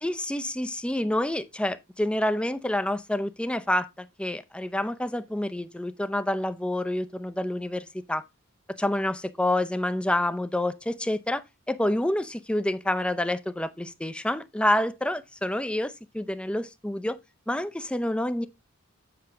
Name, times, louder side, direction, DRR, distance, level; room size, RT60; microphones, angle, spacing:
voice 1, 0.0-8.2 8.8-11.4 11.7-17.2 17.5-18.5, left 1 dB, 5° left, 0.4 m, -28 dB
7.7 x 5.7 x 3.7 m
head